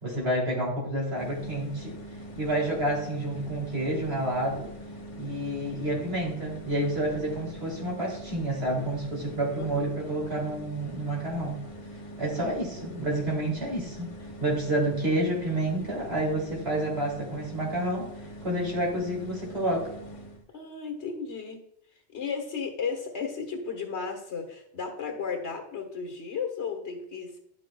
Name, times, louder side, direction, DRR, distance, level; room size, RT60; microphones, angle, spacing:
voice 1, 0.0-2.0 2.4-4.7 5.2-11.6 12.2-14.1 14.4-18.1 18.4-19.9, right 1 dB, 65° right, -3 dB, 3.1 m, -29 dB
sound 1, 1.1-20.4, equal, 35° left, 0.8 m, -43 dB
voice 2, 9.5-10.2 12.4-12.5 12.7-13.0 20.5-21.6 22.1-27.4, left 5 dB, 85° left, 4 dB, 1.6 m, -34 dB
11.0 x 6.3 x 2.3 m, 0.75 s
omnidirectional pair, 1.1 m